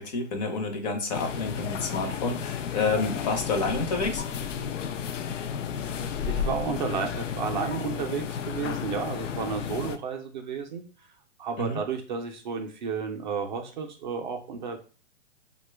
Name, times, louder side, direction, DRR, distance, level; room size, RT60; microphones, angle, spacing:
voice 1, 0.0-4.2 11.6-11.8, left 3 dB, 35° left, 5 dB, 0.6 m, -29 dB
sound 1, 1.1-10.0, left 7 dB, 75° left, 0.5 m, -32 dB
voice 2, 6.3-11.1 11.4-14.8, right 6 dB, 40° right, 3 dB, 0.4 m, -32 dB
3.0 x 2.2 x 3.2 m, 0.36 s
hypercardioid pair, 140°, 37 cm